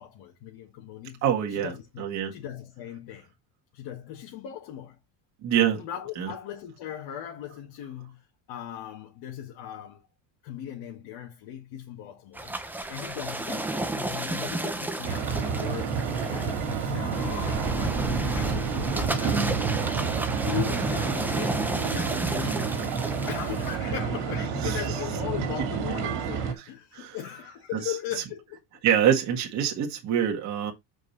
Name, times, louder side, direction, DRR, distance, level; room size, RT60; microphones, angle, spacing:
voice 1, 0.0-1.2 1.5-2.0 2.3-3.3 3.7-5.0 5.8-8.2 8.5-10.0 10.4-12.5 12.9-16.0 16.2-19.9 20.4-22.7 23.3-28.6, left 10 dB, 60° left, 2.0 m, -38 dB
voice 2, 1.2-2.3 5.4-5.8 6.2-6.3 24.6-24.8 25.7-26.0 26.9-27.2 27.8-27.9 28.8-30.7, right 9 dB, 40° right, 1.8 m, -25 dB
sound 1, 12.3-23.8, right 1 dB, 5° right, 0.7 m, -32 dB
sound 2, 15.0-26.5, right 6 dB, 65° right, 2.4 m, -29 dB
7.4 x 5.2 x 4.2 m
cardioid pair, 180°, 43 cm